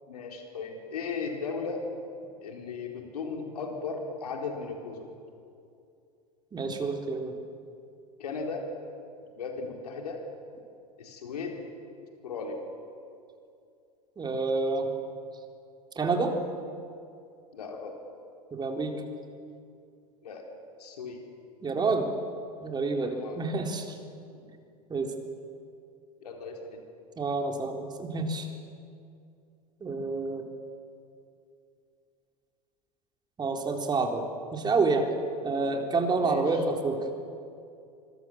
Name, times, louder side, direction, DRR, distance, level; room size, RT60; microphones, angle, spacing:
voice 1, 0.1-1.8 2.4-5.1 8.2-8.6 9.3-10.2 11.0-11.6 12.2-12.6 17.5-18.0 20.2-20.5 20.8-21.2 23.0-23.4 24.4-24.5 26.2-26.8 35.6-35.7 36.2-36.6, left 4 dB, 70° left, 2 dB, 4.3 m, -37 dB
voice 2, 6.5-7.3 14.2-14.9 16.0-16.4 18.5-18.9 21.6-22.1 22.6-24.0 24.9-25.1 27.2-28.5 29.8-30.4 33.4-34.3 34.5-35.1 35.4-37.1, right 3 dB, 20° right, 3 dB, 3.9 m, -28 dB
25.5 x 25.0 x 7.4 m, 2.5 s
figure-of-eight pair, 85°, 20 cm